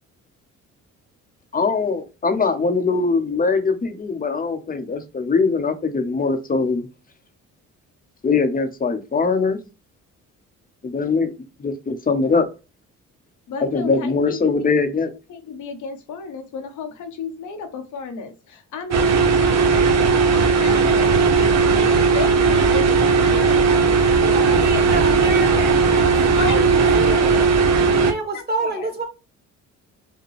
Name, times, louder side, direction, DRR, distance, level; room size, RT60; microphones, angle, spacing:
voice 1, 1.5-6.9 8.2-9.6 10.8-11.3 11.6-12.5 13.6-15.1, left 4 dB, 30° left, 0.8 m, -21 dB
voice 2, 13.5-14.5 15.3-21.1 21.3-21.9 22.1-23.6 24.2-25.1 25.6-26.6 27.0-27.5 28.3-28.9, left 5 dB, 75° left, 1.0 m, -34 dB
sound 1, 18.9-28.1, right 4 dB, 60° right, 0.9 m, -17 dB
voice 3, 24.3-27.4 27.8-29.0, right 2 dB, 30° right, 1.9 m, -27 dB
5.0 x 2.2 x 3.1 m
cardioid pair, 90°, 30 cm